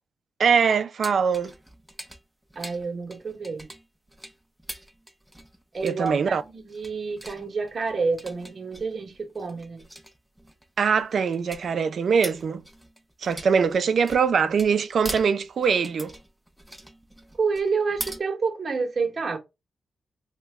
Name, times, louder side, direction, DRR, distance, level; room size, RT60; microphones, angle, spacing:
voice 1, 0.4-1.5 5.8-6.4 10.8-12.6 13.2-16.1, right 6 dB, 65° right, 0.3 m, -22 dB
sound 1, 1.0-18.2, right 1 dB, 5° right, 0.5 m, -42 dB
voice 2, 2.6-3.7 5.7-9.8 17.4-19.4, right 4 dB, 50° right, 0.8 m, -29 dB
3.0 x 2.1 x 3.4 m
wide cardioid pair, 110°, 0 cm